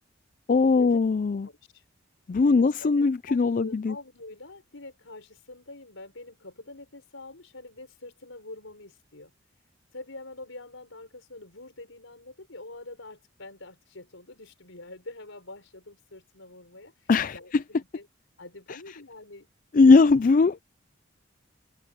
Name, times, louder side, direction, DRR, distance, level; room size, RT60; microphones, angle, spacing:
voice 1, 0.5-1.5 2.3-4.0 17.1-17.6 18.7-18.8 19.7-20.6, left 4 dB, 40° left, 0.3 m, -20 dB
voice 2, 1.4-1.8 2.5-2.9 3.3-9.3 9.9-18.1 18.4-19.5, left 2 dB, 80° left, 4.9 m, -45 dB
head